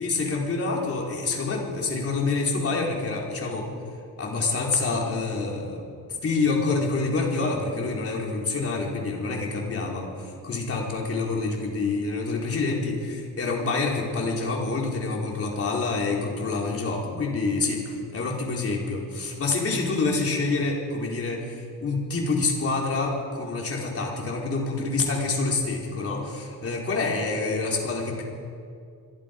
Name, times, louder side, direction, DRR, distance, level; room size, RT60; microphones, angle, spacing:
voice 1, 0.0-3.7 4.2-5.8 6.2-28.2, left 3 dB, 35° left, -1 dB, 4.5 m, -27 dB
26.0 x 22.0 x 5.4 m, 2.4 s
cardioid pair, 165°, 38 cm